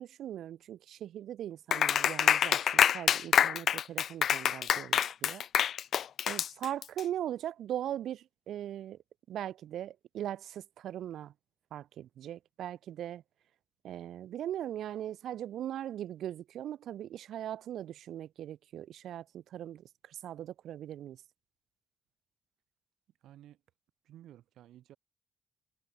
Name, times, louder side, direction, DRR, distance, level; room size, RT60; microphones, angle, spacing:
voice 1, 0.0-5.4 6.2-9.0 9.3-11.3 11.7-13.2 13.8-21.2, right 11 dB, 70° right, 0.5 m, -40 dB
Clapping, 1.7-7.0, left 9 dB, 55° left, 0.3 m, -26 dB
voice 2, 23.2-23.6 24.0-25.0, right 12 dB, 90° right, 4.6 m, -54 dB
cardioid pair, 160°, 0 cm